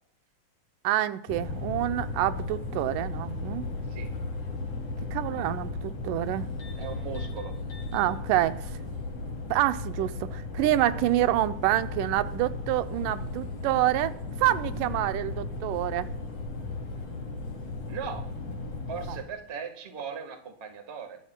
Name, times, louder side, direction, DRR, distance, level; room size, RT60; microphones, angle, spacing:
voice 1, 0.8-3.7 5.1-6.5 7.9-8.7 9.5-16.1 19.1-19.2, right 14 dB, 90° right, 2.2 m, -27 dB
sound 1, 1.3-19.2, left 3 dB, 60° left, 4.0 m, -35 dB
voice 2, 6.8-7.5 17.9-18.2 18.9-21.2, right 6 dB, 55° right, 0.7 m, -38 dB
23.0 x 11.5 x 2.2 m
omnidirectional pair, 3.6 m